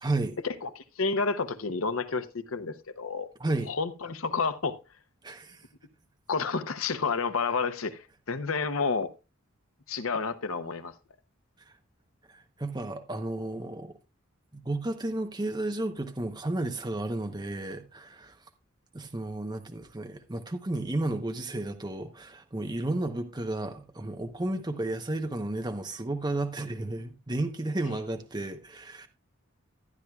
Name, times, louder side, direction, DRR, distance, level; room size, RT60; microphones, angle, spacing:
voice 1, 0.0-0.4 3.4-3.7 5.2-5.6 12.3-13.9 14.5-18.4 18.9-29.1, right 2 dB, 20° right, 0.9 m, -32 dB
voice 2, 0.6-3.3 3.7-4.8 6.3-9.1 9.9-10.9 27.9-28.0, left 4 dB, 90° left, 0.8 m, -30 dB
13.5 x 10.5 x 2.3 m
head